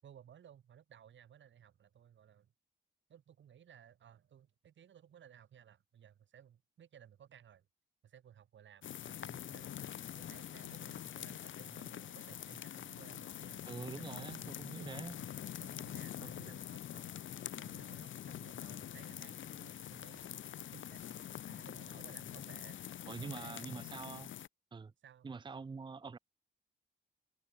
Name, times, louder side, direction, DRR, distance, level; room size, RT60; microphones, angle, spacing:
voice 1, 0.0-2.5 3.1-7.7 8.0-9.7 10.1-13.7 14.0-14.6 15.1-17.1 17.6-22.8 23.2-23.9 25.0-25.3, right 9 dB, 75° right, 5.9 m, -59 dB
sound 1, 8.8-24.5, left 10 dB, 80° left, 1.8 m, -45 dB
voice 2, 13.6-15.2 16.4-16.6 23.1-24.3 24.7-24.9 25.2-26.2, right 4 dB, 25° right, 0.7 m, -45 dB
wide cardioid pair, 125°, 20 cm